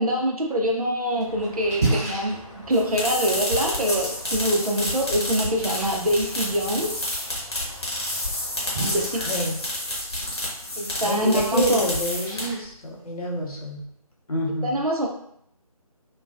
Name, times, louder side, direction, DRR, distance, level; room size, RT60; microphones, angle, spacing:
voice 1, 0.0-7.0 8.8-9.2 10.8-11.9 14.6-15.1, equal, 70° right, 0 dB, 0.6 m, -24 dB
Splash splatter, 0.7-13.7, right 2 dB, 25° right, 0.8 m, -36 dB
sound 1, 1.2-9.5, left 2 dB, 15° left, 0.5 m, -46 dB
sound 2, 2.7-12.7, left 1 dB, 45° left, 0.9 m, -29 dB
voice 2, 9.2-9.6 11.0-13.8 14.3-14.8, left 1 dB, 70° left, -2 dB, 0.7 m, -27 dB
2.3 x 2.2 x 2.4 m, 0.70 s
figure-of-eight pair, 160°, 19 cm